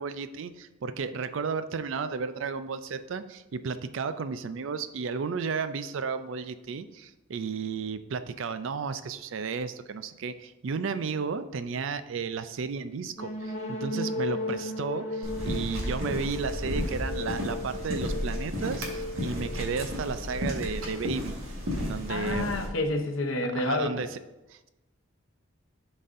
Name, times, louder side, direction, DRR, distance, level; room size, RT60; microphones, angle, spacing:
voice 1, 0.0-21.3 21.8-22.5 23.5-24.1 24.5-24.7, right 5 dB, 65° right, 11 dB, 0.4 m, -33 dB
sound 1, 13.1-20.8, left 2 dB, 30° left, 0.8 m, -36 dB
sound 2, 15.2-22.7, equal, 85° right, 1.5 m, -33 dB
voice 2, 22.1-24.0, left 2 dB, 70° left, 5 dB, 0.8 m, -29 dB
11.0 x 4.1 x 2.6 m, 1.0 s
head